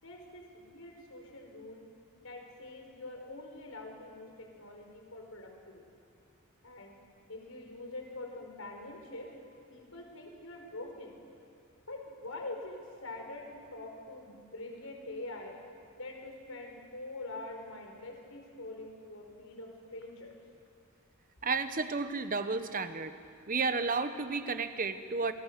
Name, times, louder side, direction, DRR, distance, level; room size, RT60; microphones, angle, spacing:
voice 1, 0.0-1.8 2.2-5.8 6.6-7.0 7.3-9.3 9.7-11.2 11.9-15.6 16.0-20.4, left 2 dB, 85° left, 2 dB, 5.0 m, -45 dB
voice 2, 21.4-23.1 23.5-25.3, right 4 dB, 40° right, 10 dB, 1.2 m, -32 dB
29.0 x 22.5 x 6.9 m, 2.4 s
head